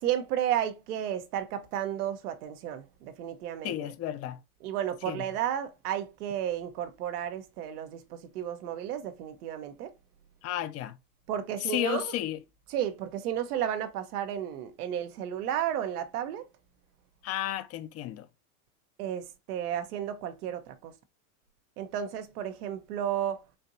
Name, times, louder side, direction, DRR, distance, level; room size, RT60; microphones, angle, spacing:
voice 1, 0.0-3.9 4.6-9.9 11.3-12.2 12.7-16.5 19.0-20.9 21.8-23.4, right 10 dB, 80° right, 0.9 m, -33 dB
voice 2, 3.6-4.4 5.1-5.2 10.4-11.0 11.7-12.4 17.2-18.3, left 13 dB, 35° left, 0.5 m, -33 dB
4.4 x 2.6 x 2.6 m
supercardioid pair, 115°, 45 cm